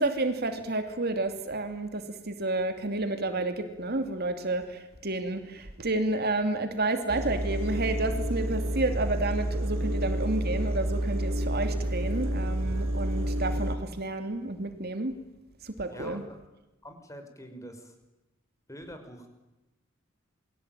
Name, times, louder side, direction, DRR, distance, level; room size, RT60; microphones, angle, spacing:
voice 1, 0.0-15.1 15.6-16.2, right 2 dB, 50° right, 7 dB, 2.7 m, -30 dB
sound 1, 7.1-13.8, right 1 dB, 75° right, 3.4 m, -29 dB
voice 2, 15.9-16.2 16.8-17.9 18.7-19.3, equal, 15° left, 7 dB, 5.3 m, -45 dB
28.5 x 23.0 x 9.1 m, 1.0 s
head